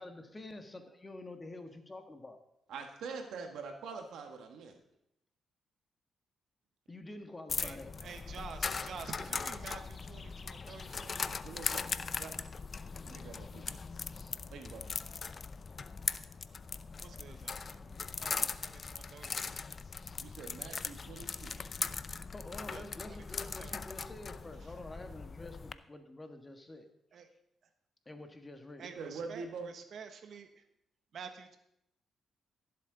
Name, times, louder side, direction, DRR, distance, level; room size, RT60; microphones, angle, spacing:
voice 1, 0.0-2.4 6.9-8.0 20.1-20.2 22.3-26.9 28.0-28.8, left 2 dB, 25° left, 6 dB, 1.4 m, -48 dB
voice 2, 2.7-4.7 11.4-11.9 12.2-12.4 12.8-13.8 14.5-14.8 18.3-18.4 20.2-21.6 29.0-29.7, right 5 dB, 80° right, 4 dB, 1.4 m, -45 dB
sound 1, 7.5-25.7, left 5 dB, 45° left, 0.5 m, -40 dB
voice 3, 7.6-11.3 17.0-19.6 22.7-23.8 27.1-27.3 28.8-30.5 31.1-31.6, right 6 dB, 65° right, 7 dB, 1.2 m, -49 dB
15.5 x 7.5 x 3.9 m, 0.80 s
cardioid pair, 75°, 0 cm